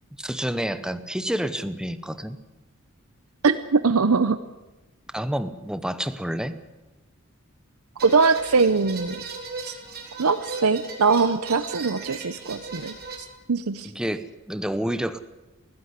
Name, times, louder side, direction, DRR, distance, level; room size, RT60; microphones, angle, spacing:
voice 1, 0.2-2.4 5.1-6.5 13.9-15.2, equal, 5° right, 12 dB, 0.9 m, -29 dB
voice 2, 3.4-4.4 8.0-9.2 9.7-9.8 10.2-12.9 13.5-13.9, right 4 dB, 90° right, 12 dB, 0.8 m, -21 dB
sound 1, 8.0-13.2, right 4 dB, 45° right, 3.6 m, -37 dB
19.5 x 15.0 x 9.7 m, 1.1 s
head